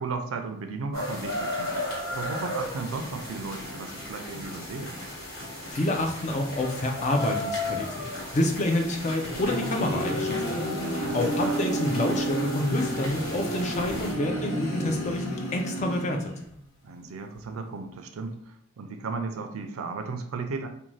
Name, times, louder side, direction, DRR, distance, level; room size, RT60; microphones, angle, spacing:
voice 1, 0.0-4.9 10.9-11.6 16.8-20.7, right 4 dB, 85° right, 6 dB, 0.4 m, -35 dB
sound 1, 0.9-14.1, left 1 dB, 50° left, 1.1 m, -36 dB
voice 2, 5.7-10.6 10.9-16.3, left 1 dB, 35° left, 3 dB, 0.4 m, -28 dB
sound 2, 9.1-16.6, right 1 dB, 85° left, 0.7 m, -31 dB
2.5 x 2.2 x 3.1 m, 0.66 s
head